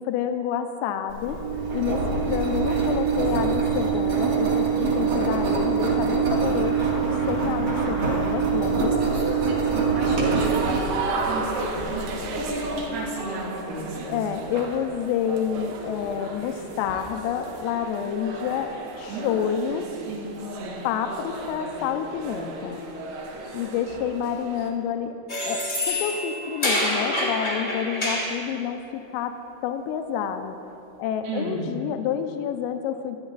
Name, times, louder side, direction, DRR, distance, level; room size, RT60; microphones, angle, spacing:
voice 1, 0.0-1.4 1.7-6.9 7.3-9.0 14.0-18.7 19.0-19.9 20.8-22.8 23.5-25.1 25.4-29.4 29.6-30.6 31.0-33.2, left 8 dB, 85° left, 7 dB, 3.3 m, -28 dB
Engine, 1.1-12.8, right 5 dB, 50° right, 1.8 m, -24 dB
voice 2, 9.0-10.6 11.2-12.0 12.3-14.2 19.1-19.5 20.1-20.8 31.2-31.7, right 2 dB, 90° right, -6 dB, 5.6 m, -33 dB
sound 1, 10.2-24.7, right 3 dB, 65° right, 2.8 m, -34 dB
sound 2, 25.3-28.4, left 1 dB, 35° left, 0.7 m, -27 dB
24.5 x 9.5 x 4.1 m, 2.9 s
omnidirectional pair, 5.9 m